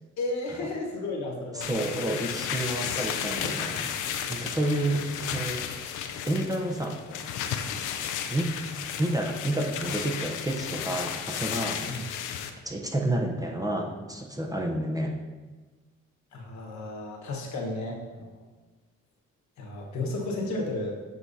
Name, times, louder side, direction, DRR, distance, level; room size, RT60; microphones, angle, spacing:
voice 1, 0.2-1.7 11.9-12.0 16.3-18.4 19.6-21.0, left 2 dB, 65° left, 0 dB, 1.3 m, -33 dB
voice 2, 1.5-3.9 4.3-5.0 5.3-5.7 6.3-7.0 8.3-8.5 9.0-11.9 12.6-15.2, right 1 dB, 10° right, 1 dB, 0.6 m, -29 dB
sound 1, 1.6-12.5, left 8 dB, 85° left, 0.5 m, -33 dB
7.9 x 4.4 x 2.7 m, 1.3 s
cardioid pair, 90°, 30 cm